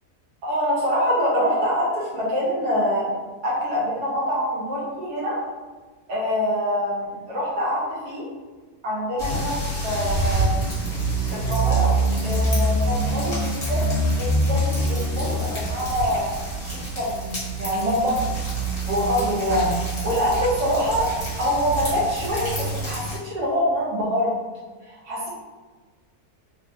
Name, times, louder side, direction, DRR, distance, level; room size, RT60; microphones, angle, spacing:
voice 1, 0.4-3.1 3.4-5.4 6.1-8.3 8.8-9.6 9.8-10.5 11.3-11.9 12.2-16.3 16.6-18.2 18.9-21.1 21.4-24.3 24.9-25.3, equal, 80° right, -6 dB, 1.5 m, -25 dB
sound 1, 9.2-23.2, right 2 dB, 25° left, 0.9 m, -25 dB
3.5 x 2.1 x 2.6 m, 1.3 s
omnidirectional pair, 1.7 m